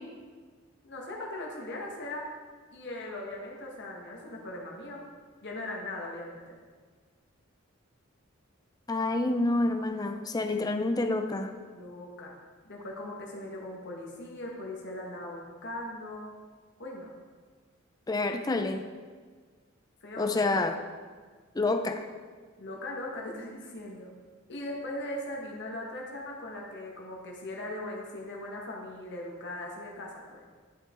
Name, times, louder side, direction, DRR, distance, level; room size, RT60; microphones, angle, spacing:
voice 1, 0.8-2.3 2.7-5.0 5.4-6.6 11.7-12.3 12.6-16.3 16.8-17.1 20.0-20.6 22.6-24.1 24.5-30.4, left 1 dB, 55° left, -1 dB, 1.5 m, -39 dB
voice 2, 8.9-11.5 18.1-18.8 20.2-20.8 21.6-22.0, left 2 dB, 20° left, 6 dB, 0.5 m, -28 dB
10.5 x 5.7 x 3.7 m, 1.5 s
head